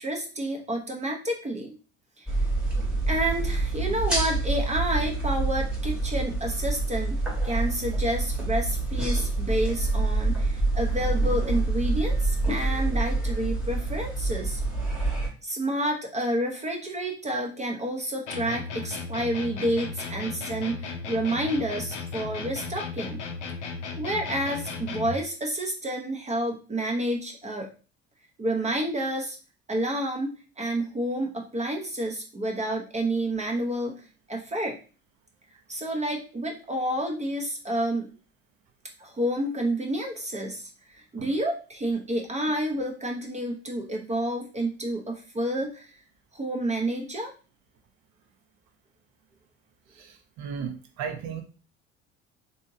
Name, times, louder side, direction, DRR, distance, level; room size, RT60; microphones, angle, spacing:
voice 1, 0.0-1.7 2.2-2.4 3.1-14.6 15.4-23.2 24.0-27.7 28.4-29.4 29.7-34.0 34.3-34.8 35.7-38.1 39.0-46.0 46.3-47.3, right 1 dB, 20° right, 1 dB, 0.7 m, -29 dB
sound 1, 2.3-15.3, right 2 dB, 5° right, 1.2 m, -27 dB
sound 2, 18.3-25.3, left 4 dB, 80° left, 0.6 m, -35 dB
voice 2, 49.9-51.4, right 7 dB, 55° right, 6 dB, 0.9 m, -35 dB
3.6 x 2.7 x 2.6 m, 0.36 s
figure-of-eight pair, 60°, 35 cm